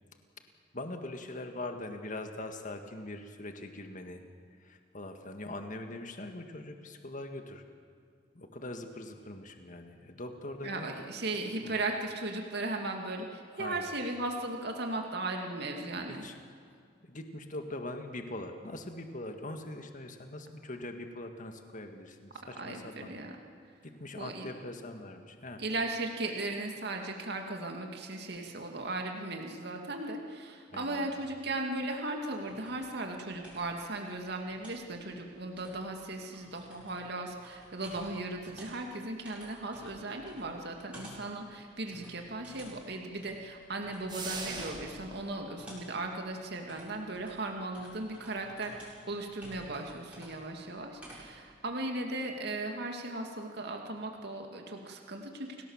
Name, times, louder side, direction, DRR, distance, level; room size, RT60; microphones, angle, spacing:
voice 1, 0.7-4.2 4.6-7.6 8.3-10.9 11.6-11.8 13.5-13.9 16.1-16.4 17.0-23.1 23.8-25.6 30.7-31.2, left 2 dB, 45° left, 6 dB, 1.9 m, -42 dB
voice 2, 10.6-16.2 22.6-23.3 24.2-24.5 25.6-55.6, right 2 dB, 65° right, 2 dB, 2.4 m, -37 dB
sound 1, 32.0-51.5, equal, 5° right, 7.7 m, -54 dB
sound 2, 44.1-45.1, right 3 dB, 25° right, 3.7 m, -39 dB
29.5 x 18.0 x 7.4 m, 2.3 s
head